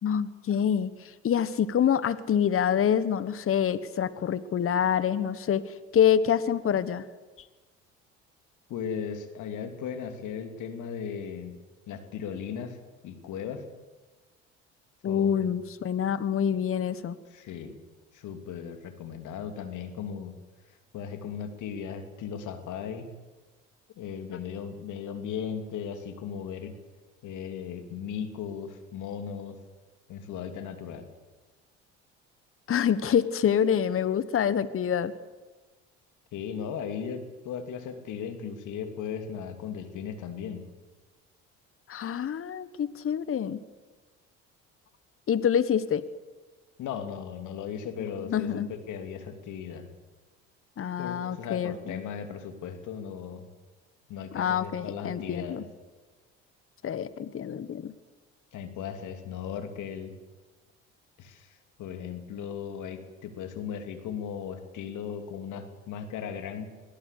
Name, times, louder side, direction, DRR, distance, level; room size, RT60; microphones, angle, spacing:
voice 1, 0.0-5.6 5.9-7.1 15.0-17.2 32.7-35.1 41.9-43.6 45.3-46.0 48.0-48.7 50.8-52.0 54.3-55.6 56.8-57.9, left 8 dB, 40° left, 16 dB, 1.3 m, -26 dB
voice 2, 8.7-11.6 11.9-12.8 13.0-13.6 15.0-15.6 17.3-17.8 18.1-20.3 20.9-23.1 24.0-26.7 27.2-29.6 30.1-31.1 36.3-40.7 46.8-49.9 51.0-53.5 54.1-55.7 58.5-60.1 61.2-66.6, left 7 dB, 65° left, 8 dB, 2.9 m, -37 dB
22.0 x 16.5 x 8.4 m, 1.2 s
hypercardioid pair, 60°, 33 cm